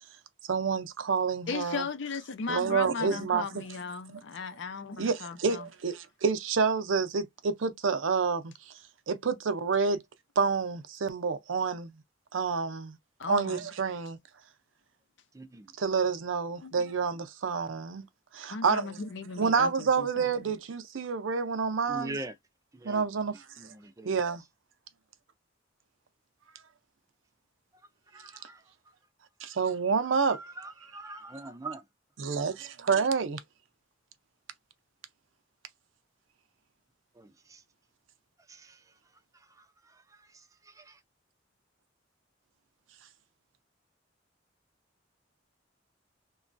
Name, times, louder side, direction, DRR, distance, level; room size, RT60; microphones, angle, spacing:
voice 1, 0.5-1.9 2.5-3.4 4.1-4.2 5.0-8.5 9.1-10.0 10.4-11.9 12.3-13.0 13.3-14.2 15.8-18.0 18.3-19.0 19.4-22.1 22.8-23.4 24.0-24.4 29.4-30.4 32.2-33.4, right 5 dB, 80° right, 0.5 m, -28 dB
voice 2, 1.5-5.6 13.2-13.7 16.6-16.7 18.5-20.6, left 4 dB, 70° left, 0.5 m, -37 dB
voice 3, 15.3-15.7 21.9-22.4 22.7-23.0 23.6-24.1 28.1-28.6 30.1-31.8 37.1-37.6 38.5-38.9 39.3-41.0, right 2 dB, 15° right, 0.4 m, -43 dB
3.0 x 2.3 x 2.5 m
head